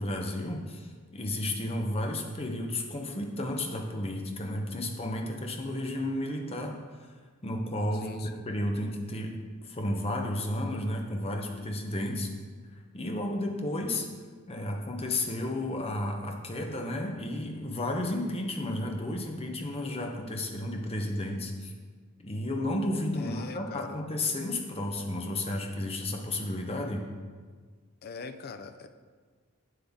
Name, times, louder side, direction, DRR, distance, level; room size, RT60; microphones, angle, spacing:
voice 1, 0.0-6.8 7.4-8.1 8.5-9.4 9.6-12.3 12.9-14.1 14.5-21.7 22.2-27.1, left 1 dB, 30° left, 2 dB, 0.9 m, -32 dB
voice 2, 7.9-8.5 23.1-24.1 28.0-28.9, left 4 dB, 45° left, 9 dB, 0.5 m, -42 dB
7.8 x 7.6 x 3.7 m, 1.6 s
head